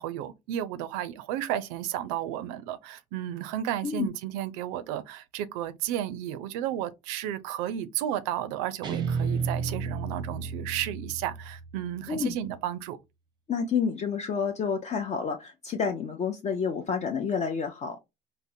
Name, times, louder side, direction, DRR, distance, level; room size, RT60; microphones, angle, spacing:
voice 1, 0.0-13.0, right 11 dB, 90° right, 0.4 m, -33 dB
Guitar, 8.8-12.0, right 5 dB, 25° right, 0.6 m, -32 dB
voice 2, 13.5-18.0, left 6 dB, 35° left, 0.5 m, -29 dB
3.6 x 2.0 x 2.6 m
supercardioid pair, 95°, 20 cm